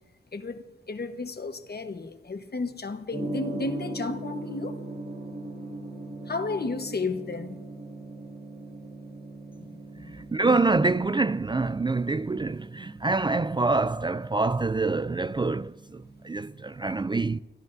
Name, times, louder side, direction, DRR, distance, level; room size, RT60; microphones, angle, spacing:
voice 1, 0.3-4.8 6.3-7.6 9.6-9.7 10.0-10.1, left 3 dB, 55° left, 1.2 m, -33 dB
Gong, 3.1-16.9, right 2 dB, 85° right, 3.3 m, -40 dB
voice 2, 10.3-17.4, right 3 dB, 25° right, 0.3 m, -26 dB
24.0 x 14.0 x 2.6 m
wide cardioid pair, 65°, 19 cm